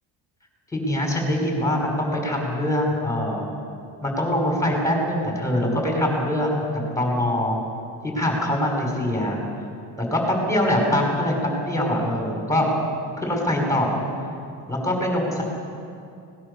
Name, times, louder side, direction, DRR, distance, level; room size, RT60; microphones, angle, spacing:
voice 1, 0.7-3.5 4.0-6.6 7.0-7.6 8.0-9.4 10.0-12.7 13.2-14.0 14.7-15.4, left 1 dB, 5° left, 0 dB, 5.5 m, -23 dB
24.5 x 19.5 x 6.9 m, 2.5 s
cardioid pair, 145°, 43 cm